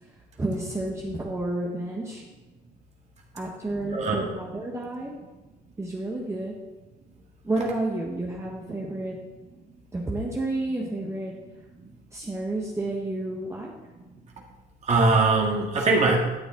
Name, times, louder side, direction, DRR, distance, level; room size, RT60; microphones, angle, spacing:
voice 1, 0.4-2.2 3.3-5.1 5.8-6.5 7.4-9.1 9.9-11.3 12.1-13.7, right 2 dB, 15° right, -2 dB, 1.3 m, -30 dB
voice 2, 14.8-16.2, right 3 dB, 40° right, -1 dB, 1.9 m, -21 dB
12.5 x 7.0 x 3.8 m, 1.1 s
cardioid pair, 110°, 17 cm